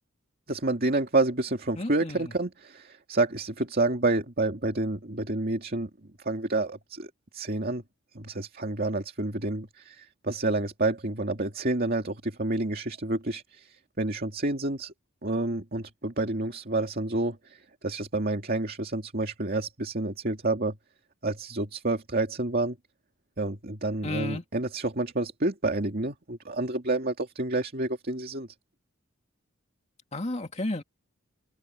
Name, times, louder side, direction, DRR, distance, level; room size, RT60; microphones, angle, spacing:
voice 1, 0.5-5.9 6.2-7.8 8.1-14.9 15.2-20.7 21.2-22.8 23.4-28.5, right 2 dB, 45° right, 2.4 m, -29 dB
voice 2, 1.8-2.3 24.0-24.4 30.1-30.8, left 1 dB, 35° left, 2.3 m, -32 dB
open air
head